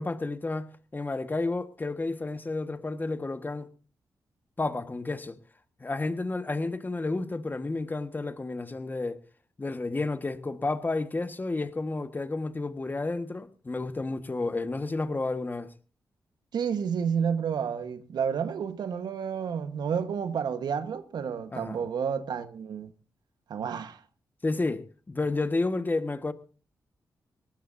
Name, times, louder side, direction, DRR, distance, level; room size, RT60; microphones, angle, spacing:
voice 1, 0.0-3.7 4.6-5.3 5.8-9.2 9.6-15.7 21.5-21.8 24.4-26.3, left 3 dB, 25° left, 1.5 m, -31 dB
voice 2, 16.5-22.9 23.5-24.0, right 7 dB, 85° right, 1.3 m, -30 dB
20.5 x 18.0 x 2.7 m
cardioid pair, 85°, 7 cm